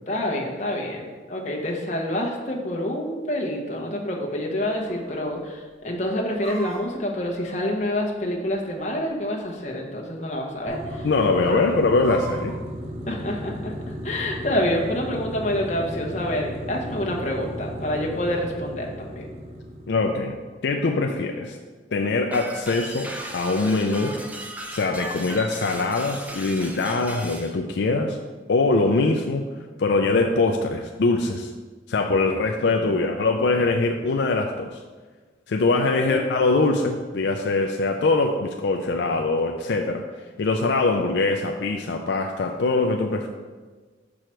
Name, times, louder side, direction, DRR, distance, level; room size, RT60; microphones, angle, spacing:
voice 1, 0.1-11.1 11.5-11.8 13.1-13.7 14.0-19.3 32.4-32.5 32.7-33.1 36.0-36.2, left 1 dB, 40° left, -1 dB, 1.0 m, -27 dB
Chicken rooster, 4.7-5.1 5.4-5.5 5.9-8.2 8.9-9.7 10.0-10.2 10.5-11.0 11.4-12.6, right 3 dB, 60° right, 2.1 m, -40 dB
sound 1, 10.7-20.5, equal, 40° right, 0.8 m, -35 dB
voice 2, 11.0-12.5 19.9-20.4 20.6-21.6 21.9-24.2 24.7-28.2 28.5-29.4 29.8-31.5 31.9-34.8 35.5-40.0 40.4-43.3, left 3 dB, 75° left, 3 dB, 0.4 m, -22 dB
sound 2, 22.3-27.5, right 1 dB, 10° right, 0.5 m, -36 dB
6.2 x 4.8 x 4.4 m, 1.4 s
head